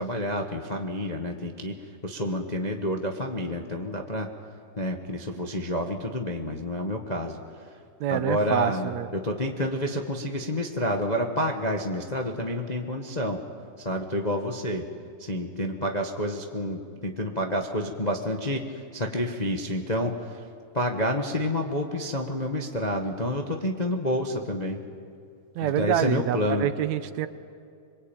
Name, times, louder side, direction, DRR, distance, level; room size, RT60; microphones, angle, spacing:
voice 1, 0.0-4.3 4.8-7.4 8.1-13.4 13.8-14.9 15.2-18.6 18.9-20.4 20.7-24.8 25.6-26.7, left 1 dB, 30° left, 3 dB, 0.7 m, -29 dB
voice 2, 8.0-9.1 25.6-27.3, right 11 dB, 75° right, 12 dB, 2.1 m, -27 dB
25.5 x 22.5 x 9.1 m, 2.4 s
omnidirectional pair, 3.4 m